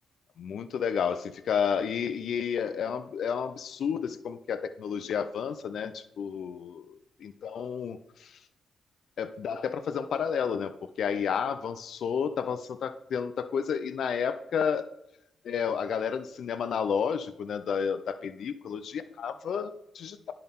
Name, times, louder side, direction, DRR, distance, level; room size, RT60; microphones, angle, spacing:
voice 1, 0.4-8.4 9.2-14.9 15.4-20.3, left 7 dB, 70° left, 12 dB, 0.4 m, -31 dB
10.5 x 3.9 x 3.7 m, 0.81 s
supercardioid pair, 55°, 0 cm